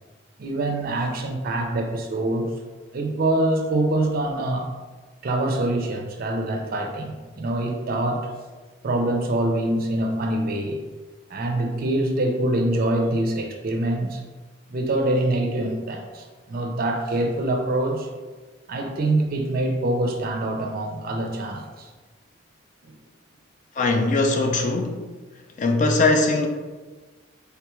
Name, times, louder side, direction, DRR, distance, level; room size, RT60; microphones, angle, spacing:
voice 1, 0.4-2.5 2.9-4.7 5.2-8.3 8.8-10.8 11.3-14.2 14.7-18.1 18.7-21.9 22.8-22.9, right 1 dB, 45° right, 3 dB, 0.4 m, -25 dB
voice 2, 23.8-25.1 25.6-26.5, left 2 dB, 40° left, 3 dB, 0.3 m, -20 dB
3.4 x 2.3 x 3.0 m, 1.3 s
head